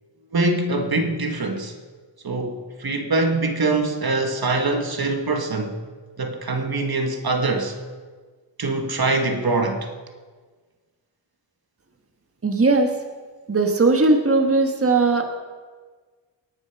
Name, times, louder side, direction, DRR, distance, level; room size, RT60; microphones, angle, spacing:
voice 1, 0.3-1.7 2.2-5.8 6.2-7.8 8.6-9.9, right 2 dB, 55° right, 4 dB, 1.5 m, -23 dB
voice 2, 12.4-12.9 13.5-15.2, right 3 dB, 30° right, 4 dB, 1.4 m, -18 dB
19.0 x 7.1 x 5.9 m, 1.4 s
wide cardioid pair, 75°, 45 cm